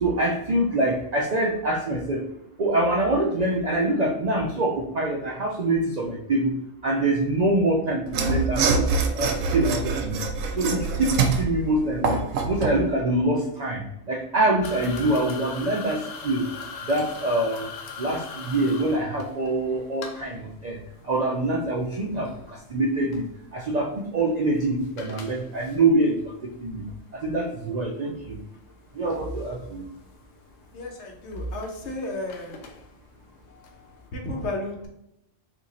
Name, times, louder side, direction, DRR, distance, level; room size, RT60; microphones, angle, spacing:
voice 1, 0.0-2.3 2.6-6.6 6.8-8.7 9.1-10.3 10.6-16.5 16.9-17.7 18.0-26.9 27.1-28.4 28.9-29.9, right 2 dB, 60° right, -1 dB, 0.4 m, -25 dB
Mechanisms / Sawing, 8.1-12.8, right 4 dB, 85° right, 1.0 m, -25 dB
sound 1, 14.6-34.1, left 5 dB, 85° left, 1.0 m, -44 dB
voice 2, 30.7-32.6 34.1-34.9, left 2 dB, 65° left, 1 dB, 1.1 m, -33 dB
2.9 x 2.7 x 3.9 m, 0.82 s
omnidirectional pair, 1.3 m